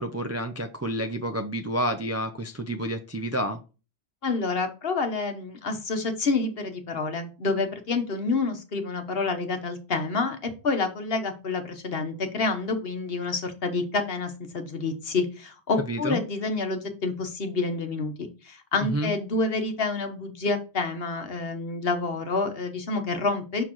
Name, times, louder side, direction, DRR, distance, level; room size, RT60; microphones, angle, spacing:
voice 1, 0.0-3.6 15.9-16.2 18.9-19.1, right 1 dB, 25° right, 5 dB, 0.3 m, -29 dB
voice 2, 4.2-23.6, left 3 dB, 60° left, 6 dB, 1.3 m, -28 dB
6.5 x 5.7 x 3.0 m, 0.32 s
omnidirectional pair, 1.1 m